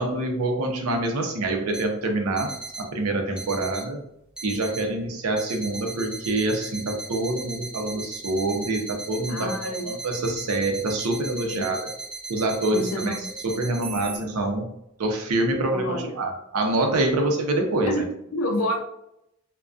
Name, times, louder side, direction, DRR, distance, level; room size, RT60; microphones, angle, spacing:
voice 1, 0.0-2.5 2.8-4.0 4.4-11.9 12.3-13.2 13.4-14.7 15.0-18.0, right 2 dB, 90° right, 3 dB, 0.5 m, -26 dB
sound 1, 1.7-1.8 2.4-2.8 3.4-3.8 4.4-4.8 5.4-14.2, right 3 dB, 5° right, 0.4 m, -37 dB
voice 2, 9.3-9.9 11.5-11.7 12.7-13.2 15.7-16.1 17.9-18.1 18.3-18.8, left 1 dB, 80° left, 5 dB, 0.4 m, -28 dB
2.5 x 2.2 x 2.3 m, 0.79 s
head